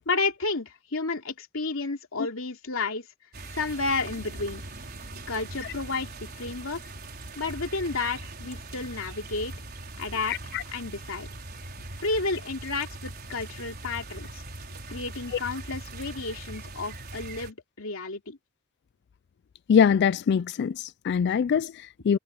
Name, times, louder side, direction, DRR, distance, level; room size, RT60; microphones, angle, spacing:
voice 1, 0.1-3.1 3.5-4.6 5.3-6.8 7.4-9.5 10.0-10.4 10.7-11.3 12.0-14.4 14.9-18.4, left 3 dB, 80° left, 2.8 m, -31 dB
sound 1, 3.3-17.5, right 2 dB, 50° right, 5.1 m, -41 dB
sound 2, 3.4-16.8, left 1 dB, 15° left, 5.8 m, -61 dB
voice 2, 10.3-10.6 19.7-22.2, left 7 dB, 55° left, 0.3 m, -23 dB
head